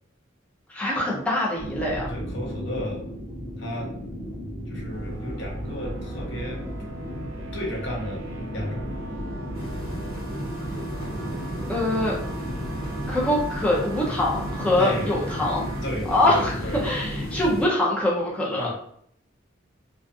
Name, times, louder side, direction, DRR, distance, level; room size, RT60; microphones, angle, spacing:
voice 1, 0.7-2.1 11.7-12.2 13.1-15.7 16.1-16.6 16.8-18.7, left 1 dB, 5° left, -5 dB, 0.5 m, -24 dB
sound 1, 1.6-17.6, equal, 20° right, 1.1 m, -35 dB
voice 2, 2.1-3.0 3.6-3.9 4.7-6.6 7.5-8.9 14.8-15.1 15.8-16.9 18.5-18.7, equal, 65° left, -1 dB, 0.8 m, -33 dB
sound 2, 4.9-15.9, right 3 dB, 75° right, 0.5 m, -40 dB
sound 3, 9.5-17.7, equal, 50° left, 1.1 m, -36 dB
2.4 x 2.3 x 2.5 m, 0.67 s
head